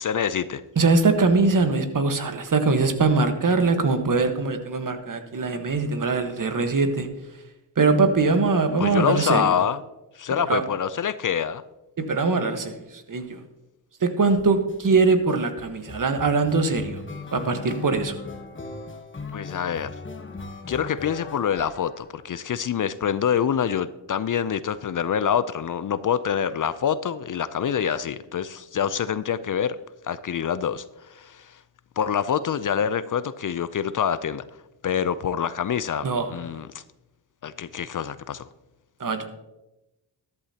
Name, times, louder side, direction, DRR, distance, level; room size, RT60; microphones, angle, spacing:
voice 1, 0.0-0.6 8.8-9.8 10.2-11.6 19.3-19.9 20.7-29.8 30.0-31.6 32.0-34.4 34.8-36.8 37.4-38.5, left 8 dB, 45° left, 0.5 m, -26 dB
voice 2, 0.8-7.1 7.8-9.5 10.5-10.6 12.0-12.8 13.1-13.4 14.0-17.0 17.3-18.2 36.0-36.3 39.0-39.3, right 3 dB, 45° right, 1.4 m, -22 dB
sound 1, 14.4-14.8 15.3-22.5, left 3 dB, 25° left, 1.2 m, -38 dB
13.0 x 11.0 x 2.9 m
cardioid pair, 55°, 43 cm